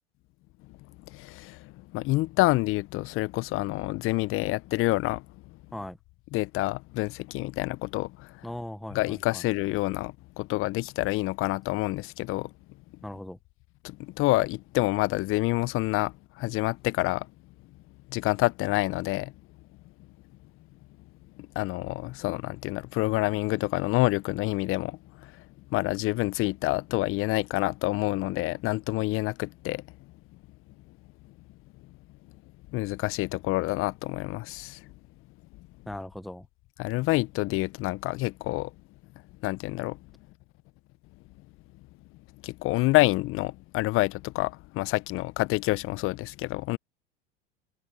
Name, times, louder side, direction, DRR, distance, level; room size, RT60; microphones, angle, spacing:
voice 1, 1.1-5.6 6.3-8.5 8.9-12.5 13.8-17.3 18.1-19.3 21.4-29.8 32.7-34.9 36.8-38.7 39.4-40.0 42.4-46.8, left 20 dB, 40° left, 0.8 m, -28 dB
voice 2, 8.4-9.4 13.0-13.4 35.9-36.5, left 1 dB, ahead, 0.8 m, -38 dB
hypercardioid pair, 85°, 32 cm